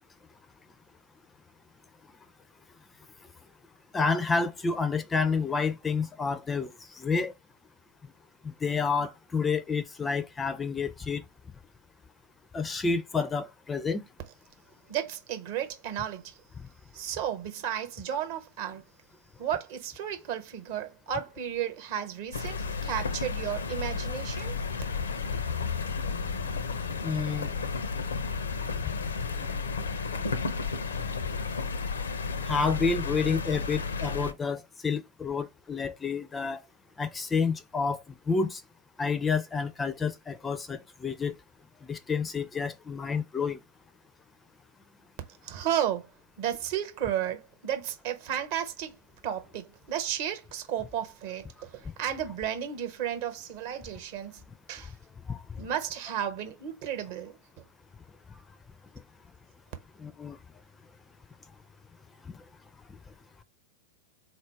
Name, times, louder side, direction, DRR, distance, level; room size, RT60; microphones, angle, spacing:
voice 1, 3.9-6.7 7.0-7.3 8.4-11.2 12.5-14.0 27.0-27.5 32.4-36.6 37.0-38.0 38.3-38.6 39.0-41.3 41.9-43.6 55.3-55.4 60.0-60.4, left 5 dB, 15° left, 0.4 m, -29 dB
voice 2, 14.9-16.4 16.9-18.8 19.4-24.6 45.4-46.1 46.4-49.0 49.2-54.4 54.7-54.9 55.6-57.4, right 10 dB, 50° right, 1.0 m, -33 dB
sound 1, 22.3-34.3, left 5 dB, 70° left, 0.5 m, -32 dB
4.0 x 2.5 x 4.5 m
figure-of-eight pair, 90°, 0 cm